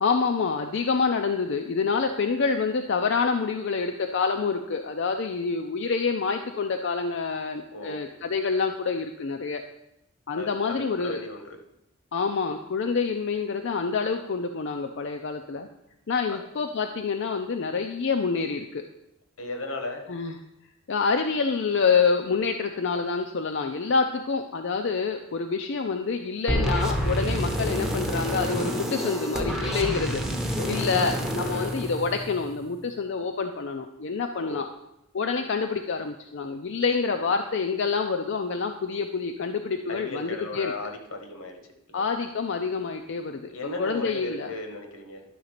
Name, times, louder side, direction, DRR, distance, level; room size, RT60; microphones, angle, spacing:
voice 1, 0.0-9.6 10.3-11.2 12.1-15.7 16.1-18.8 20.1-20.4 20.9-30.2 30.7-34.7 35.1-40.7 41.9-43.5 43.8-44.5, left 5 dB, 60° left, 5 dB, 0.5 m, -27 dB
voice 2, 7.7-8.0 10.3-11.6 16.3-16.4 19.4-20.0 30.6-30.8 31.4-31.7 34.3-34.6 39.9-41.6 42.0-42.1 43.5-45.2, left 2 dB, 85° left, 4 dB, 1.4 m, -36 dB
sound 1, 26.5-32.6, equal, ahead, 0.8 m, -28 dB
11.0 x 3.9 x 6.6 m, 0.85 s
head